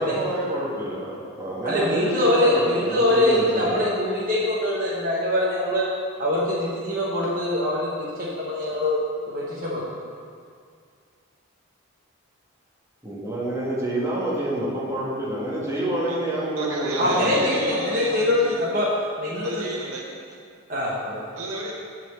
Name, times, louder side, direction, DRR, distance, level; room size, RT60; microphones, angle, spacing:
voice 1, 0.0-3.8 13.0-17.4, right 1 dB, 15° right, -7 dB, 1.5 m, -27 dB
voice 2, 1.6-5.9 6.2-9.0 9.3-9.8 17.0-18.9 19.2-19.5 20.7-21.3, left 1 dB, 40° right, -6 dB, 1.1 m, -23 dB
voice 3, 16.6-18.7 19.4-20.4 21.4-21.7, right 2 dB, 75° right, -1 dB, 1.1 m, -32 dB
8.2 x 4.2 x 6.8 m, 2.2 s
head